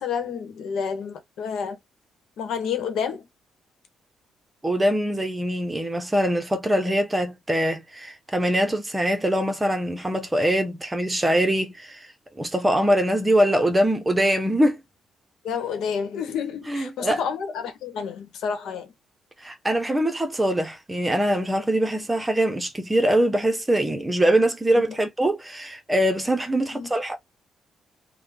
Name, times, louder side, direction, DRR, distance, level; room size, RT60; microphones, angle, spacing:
voice 1, 0.0-1.8 2.4-3.3 15.4-18.9 24.7-25.0 26.7-26.9, left 6 dB, 80° left, 1.0 m, -29 dB
voice 2, 4.6-12.0 12.4-14.8 16.7-17.2 19.4-27.2, right 1 dB, 15° right, 0.8 m, -23 dB
3.4 x 2.2 x 3.3 m
cardioid pair, 95°, 0 cm